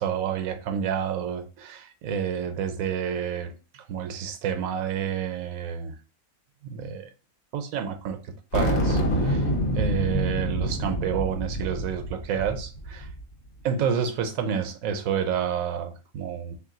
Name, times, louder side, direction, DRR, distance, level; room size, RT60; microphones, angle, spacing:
voice 1, 0.0-6.0 6.6-7.1 7.5-13.1 13.6-16.5, right 8 dB, 75° right, 1.0 m, -29 dB
sound 1, 8.5-13.2, equal, 65° left, 1.2 m, -26 dB
3.4 x 2.9 x 3.7 m
omnidirectional pair, 1.5 m